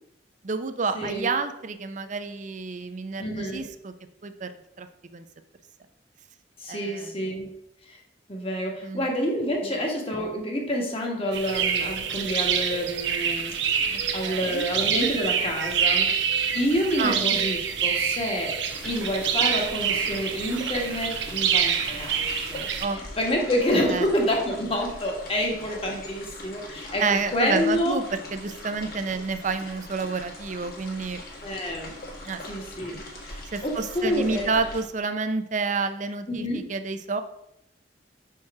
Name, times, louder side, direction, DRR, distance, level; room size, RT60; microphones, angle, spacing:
voice 1, 0.4-3.9 4.2-4.5 4.8-4.9 5.1-5.2 6.7-7.3 8.8-9.1 13.9-14.7 17.0-17.2 22.8-23.0 23.9-24.1 27.0-28.0 28.3-31.2 32.2-32.4 33.5-37.2, right 4 dB, 45° right, 10 dB, 0.5 m, -29 dB
voice 2, 0.9-1.3 3.2-3.7 6.6-7.5 7.9-8.0 8.3-16.3 16.5-27.0 27.3-28.0 29.0-29.1 31.4-31.9 32.5-34.5 36.3-36.7, equal, 30° left, 0 dB, 1.3 m, -28 dB
sound 1, 11.3-22.9, right 7 dB, 75° right, 0.8 m, -26 dB
sound 2, 18.7-34.8, left 1 dB, 55° left, 1.6 m, -41 dB
6.1 x 4.5 x 4.7 m, 0.79 s
head